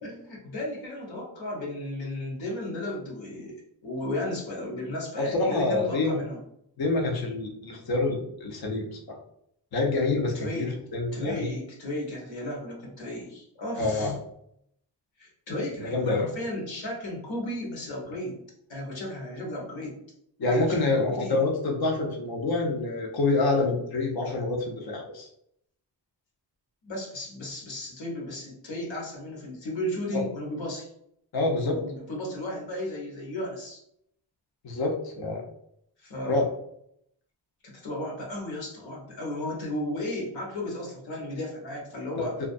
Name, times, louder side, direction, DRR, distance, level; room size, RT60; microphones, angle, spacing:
voice 1, 0.0-3.5 3.8-6.4 10.3-10.8 11.1-14.1 15.2-18.4 18.7-20.0 20.4-21.4 26.8-30.9 31.6-33.8 36.0-36.5 37.6-42.4, left 1 dB, 75° left, -2 dB, 1.0 m, -34 dB
voice 2, 5.2-6.2 6.8-9.2 9.7-11.5 13.8-14.2 15.8-16.3 20.4-25.3 30.1-30.2 31.3-31.8 34.6-35.5 36.3-36.4, left 3 dB, 55° left, 0 dB, 0.7 m, -27 dB
2.3 x 2.1 x 2.6 m, 0.72 s
cardioid pair, 55°, 46 cm